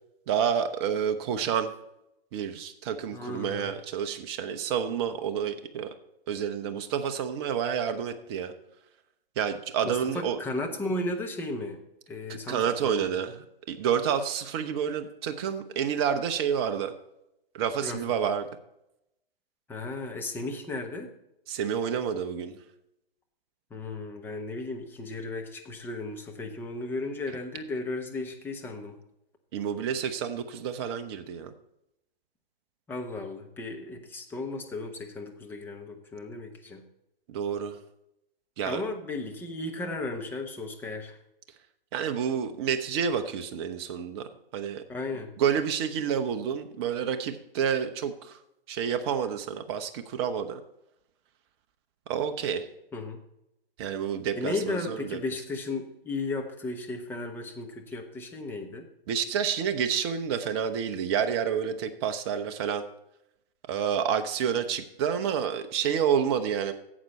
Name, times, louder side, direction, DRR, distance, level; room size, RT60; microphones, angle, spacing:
voice 1, 0.3-1.7 2.3-5.9 6.3-8.5 9.4-10.4 12.5-16.9 17.5-18.5 21.5-22.5 29.5-31.5 37.3-37.8 38.6-38.8 41.9-44.2 44.5-44.8 45.4-48.4 48.7-50.6 52.1-52.6 53.8-55.2 59.1-62.8 63.7-66.7, right 8 dB, 25° right, 8 dB, 0.8 m, -29 dB
voice 2, 3.1-3.7 9.8-11.8 12.1-13.2 17.8-18.0 19.7-21.1 23.7-29.0 32.9-36.8 38.6-41.2 44.9-45.3 52.9-53.2 54.4-58.9, left 2 dB, 5° left, 3 dB, 0.9 m, -35 dB
11.5 x 8.1 x 4.2 m, 0.83 s
figure-of-eight pair, 135°, 30 cm